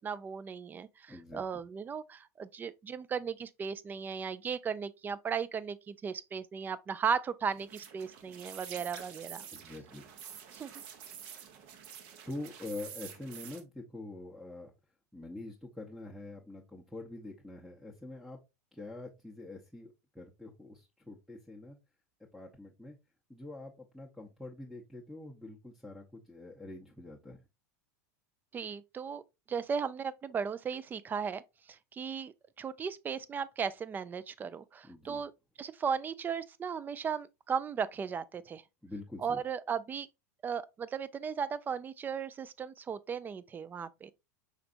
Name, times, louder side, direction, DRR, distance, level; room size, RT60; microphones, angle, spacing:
voice 1, 0.0-9.4 10.5-10.7 28.5-29.2 29.5-31.4 31.7-35.3 35.6-38.6 39.2-40.1 40.4-44.1, right 6 dB, 20° right, 0.3 m, -36 dB
voice 2, 1.1-1.4 9.5-10.1 12.3-14.7 15.1-18.4 18.7-21.8 22.3-23.0 23.3-27.4 34.8-35.2 38.8-39.4, left 2 dB, ahead, 0.8 m, -45 dB
sound 1, 7.5-13.6, right 8 dB, 55° right, 0.9 m, -48 dB
5.0 x 3.3 x 2.5 m
hypercardioid pair, 105°, 9 cm